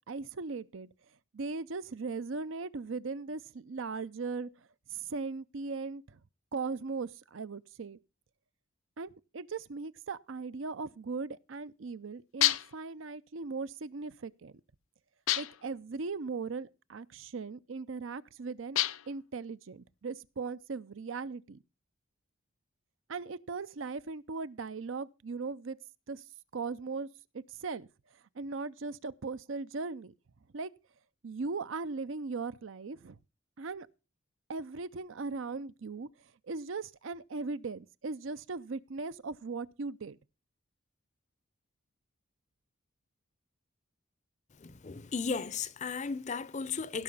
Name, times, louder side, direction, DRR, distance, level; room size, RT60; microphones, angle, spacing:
voice 1, 0.1-0.9 1.3-4.5 4.9-6.2 6.5-8.0 9.0-14.5 15.4-18.8 19.1-21.6 23.1-25.8 26.1-26.2 26.5-27.1 27.5-27.9 28.3-30.1 30.5-30.7 31.2-33.2 33.6-33.9 34.5-36.1 36.5-40.2, right 4 dB, 70° right, 0.6 m, -38 dB
sound 1, 12.4-12.9 15.3-15.7 18.7-19.2, left 15 dB, 85° left, 0.6 m, -29 dB
voice 2, 44.6-47.0, left 5 dB, 35° left, 0.5 m, -35 dB
16.5 x 5.8 x 5.4 m
head